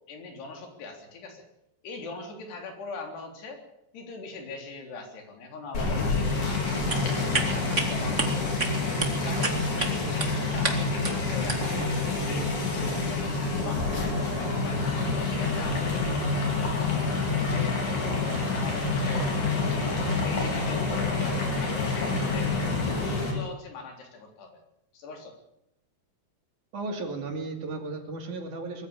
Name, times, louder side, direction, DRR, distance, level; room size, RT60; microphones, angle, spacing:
voice 1, 0.1-1.4 1.8-3.6 3.9-6.7 7.1-8.8 9.3-11.8 12.3-14.9 15.2-17.1 17.4-18.0 18.5-22.5 22.9-24.5 24.9-25.4, left 3 dB, 85° left, 3 dB, 5.7 m, -41 dB
sound 1, 5.7-23.3, left 3 dB, 50° left, 5.8 m, -27 dB
sound 2, 6.7-11.8, right 3 dB, 25° right, 1.8 m, -32 dB
voice 2, 26.7-28.9, right 3 dB, 50° right, 4 dB, 3.9 m, -34 dB
22.0 x 15.0 x 8.8 m, 0.82 s
omnidirectional pair, 4.6 m